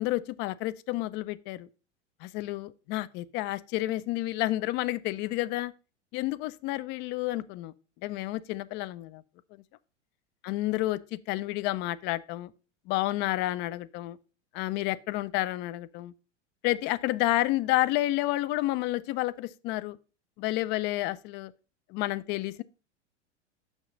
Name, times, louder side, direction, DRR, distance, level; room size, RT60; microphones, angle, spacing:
voice 1, 0.0-1.7 2.2-5.7 6.1-7.7 8.0-9.2 9.5-9.6 10.4-12.5 12.9-14.2 14.5-16.1 16.6-20.0 20.4-21.5 21.9-22.6, left 17 dB, 30° left, 0.4 m, -30 dB
6.0 x 5.4 x 5.1 m
figure-of-eight pair, 95°, 36 cm